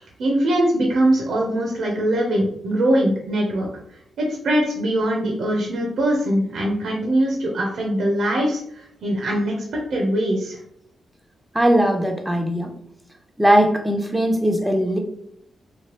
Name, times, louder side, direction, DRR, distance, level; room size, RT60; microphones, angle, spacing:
voice 1, 0.0-3.7 4.2-9.6 9.9-10.6, right 1 dB, 75° right, -1 dB, 0.6 m, -22 dB
voice 2, 11.5-12.7 13.4-15.0, right 1 dB, 10° right, 4 dB, 0.6 m, -19 dB
3.0 x 2.2 x 3.0 m, 0.71 s
cardioid pair, 65°, 0 cm